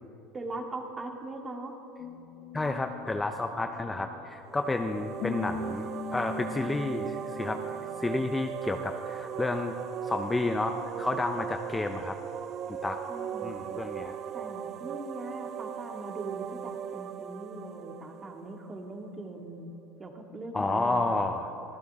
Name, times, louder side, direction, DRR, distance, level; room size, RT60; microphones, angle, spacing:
voice 1, 0.3-1.7 13.1-13.6 14.3-19.7 20.0-21.3, right 2 dB, 25° right, 2 dB, 2.4 m, -41 dB
sound 1, 2.0-8.3, left 4 dB, 50° left, 1.3 m, -41 dB
voice 2, 2.5-7.6 8.0-9.7 10.0-12.2 12.8-13.0 13.4-14.2 20.5-21.5, left 2 dB, 15° left, 6 dB, 0.9 m, -31 dB
sound 2, 4.4-19.1, right 9 dB, 45° right, 0.6 m, -38 dB
24.0 x 15.5 x 3.8 m, 2.8 s
hypercardioid pair, 90°, 0 cm